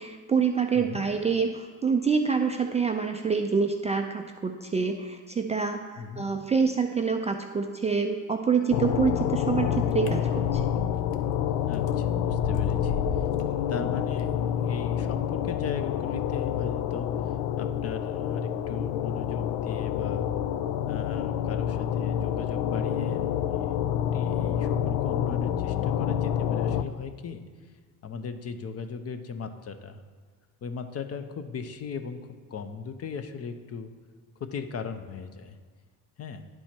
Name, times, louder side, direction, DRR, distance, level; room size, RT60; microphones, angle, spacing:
voice 1, 0.0-10.6, right 5 dB, 20° right, 4 dB, 0.3 m, -26 dB
voice 2, 0.8-1.1 6.0-6.3 11.6-13.2 13.7-20.3 20.9-23.8 24.1-27.7 28.0-30.0 30.6-33.9 34.4-35.6 36.2-36.5, left 5 dB, 35° left, 9 dB, 0.6 m, -37 dB
sound 1, 8.7-26.8, left 10 dB, 85° left, 0.5 m, -28 dB
sound 2, 10.1-10.7 11.1-11.2 11.9-12.0 12.3-13.4, left 6 dB, 65° left, 0.9 m, -31 dB
10.0 x 4.4 x 4.4 m, 1.5 s
supercardioid pair, 80°, 40 cm